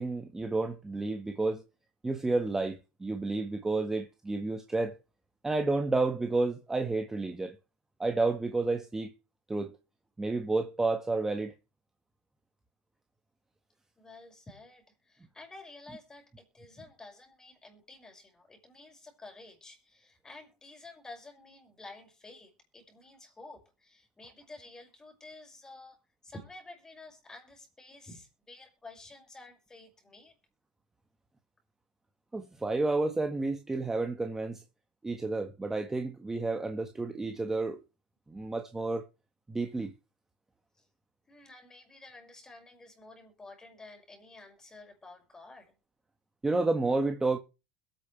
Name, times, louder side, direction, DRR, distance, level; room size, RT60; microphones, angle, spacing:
voice 1, 0.0-1.6 2.0-5.0 5.4-7.6 8.0-9.1 9.5-9.8 10.2-11.5 32.3-34.6 35.0-37.8 38.3-39.0 39.5-39.9 46.4-47.4, right 3 dB, 10° right, 1.5 m, -30 dB
voice 2, 14.0-26.0 26.2-30.3 40.8-40.9 41.3-45.7, left 2 dB, 15° left, 5.8 m, -51 dB
22.0 x 8.9 x 3.4 m
supercardioid pair, 120°, 4 cm